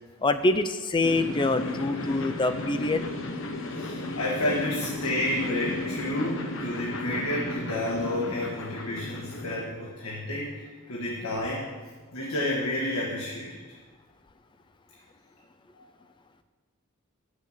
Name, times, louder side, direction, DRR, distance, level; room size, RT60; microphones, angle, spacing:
voice 1, 0.2-3.0, left 2 dB, 20° left, 9 dB, 0.4 m, -25 dB
sound 1, 1.0-9.6, left 2 dB, 60° left, 1.0 m, -34 dB
voice 2, 3.5-11.7 12.1-13.6, left 1 dB, 85° left, -4 dB, 1.6 m, -30 dB
8.0 x 6.9 x 7.3 m, 1.4 s
head